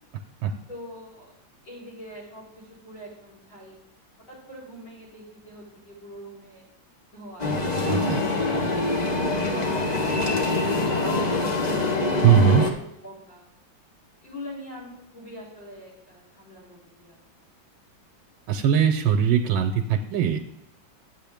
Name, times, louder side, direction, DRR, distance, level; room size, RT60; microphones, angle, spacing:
voice 1, 0.7-1.3 1.6-3.7 4.3-6.6 7.1-7.5 8.4-8.7 9.3-12.3 12.7-13.4 14.2-17.2, equal, 75° left, -5 dB, 4.7 m, -43 dB
sound 1, 7.4-12.7, left 2 dB, 40° left, 0.5 m, -24 dB
voice 2, 7.9-8.2 12.2-12.7 18.5-20.5, right 8 dB, 85° right, 5 dB, 1.4 m, -20 dB
9.2 x 7.5 x 3.5 m, 0.82 s
omnidirectional pair, 2.1 m